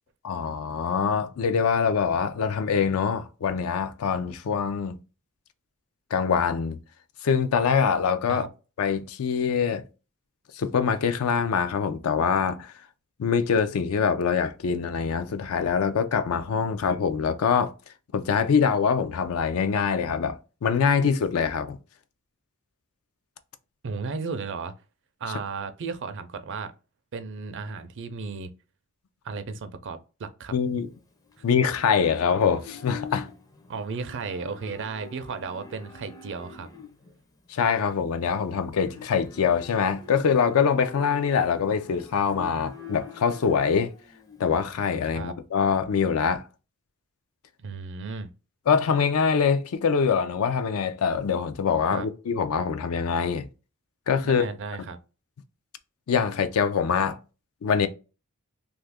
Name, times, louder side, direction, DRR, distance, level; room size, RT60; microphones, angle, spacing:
voice 1, 0.2-5.0 6.1-6.8 7.2-8.5 8.8-9.8 10.5-12.7 13.2-17.7 18.1-21.8 30.5-30.9 31.4-33.3 37.5-43.9 44.4-46.5 48.7-53.5 54.1-54.5 56.1-57.2 57.6-57.9, left 6 dB, 75° left, 0.4 m, -24 dB
voice 2, 23.8-24.7 25.2-26.7 27.1-28.5 29.2-30.5 33.7-36.7 45.1-45.3 47.6-48.3 51.9-52.1 54.2-55.0, right 4 dB, 55° right, 0.5 m, -34 dB
Livestock farm animals working animals, 30.4-45.2, left 5 dB, 15° left, 0.4 m, -46 dB
2.7 x 2.4 x 3.4 m
head